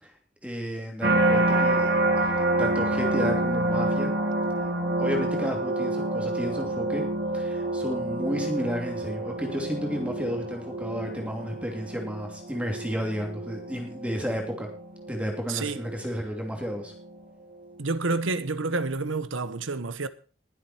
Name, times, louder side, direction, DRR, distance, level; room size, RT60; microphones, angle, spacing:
voice 1, 0.4-1.9 2.2-2.3 2.6-4.1 5.0-7.0 7.3-14.7 15.1-16.9, equal, 5° right, 2.9 m, -32 dB
sound 1, 1.0-16.2 16.7-17.2, right 2 dB, 55° right, 2.9 m, -28 dB
voice 2, 15.5-15.8 17.8-20.1, right 3 dB, 85° right, 1.1 m, -29 dB
20.0 x 7.9 x 4.4 m
head